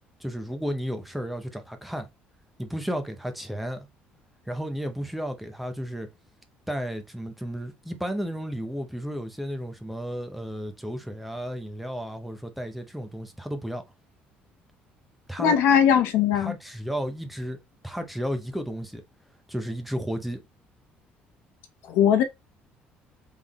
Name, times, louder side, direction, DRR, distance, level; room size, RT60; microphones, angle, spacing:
voice 1, 0.2-2.1 2.6-3.9 4.5-6.1 6.7-13.8 15.3-15.6 16.3-19.0 19.5-20.4, equal, ahead, 0.6 m, -33 dB
voice 2, 15.4-16.5 21.9-22.2, left 8 dB, 80° left, 0.8 m, -20 dB
3.8 x 3.6 x 3.0 m
cardioid pair, 165°, 4 cm